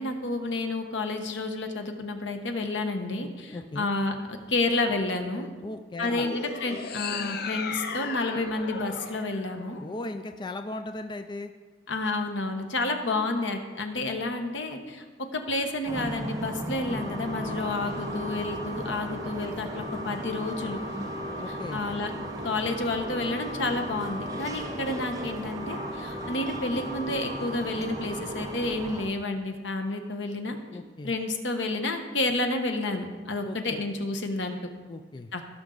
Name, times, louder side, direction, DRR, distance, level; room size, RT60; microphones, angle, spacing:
voice 1, 0.0-5.5 6.0-9.8 11.9-15.0 15.3-20.8 21.5-22.1 22.4-30.6 31.0-34.6 35.3-35.4, left 2 dB, 80° left, 5 dB, 1.2 m, -30 dB
voice 2, 3.5-3.9 5.6-6.3 9.8-11.5 21.4-21.8 30.7-31.1 33.4-33.8 34.9-35.3, left 2 dB, 25° left, 7 dB, 0.4 m, -37 dB
sound 1, 6.0-10.4, left 5 dB, 60° left, 0.6 m, -36 dB
sound 2, 15.8-29.1, right 1 dB, 20° right, 0.8 m, -38 dB
sound 3, 16.9-28.8, left 1 dB, 70° right, 1.5 m, -39 dB
17.0 x 6.3 x 3.9 m, 1.4 s
head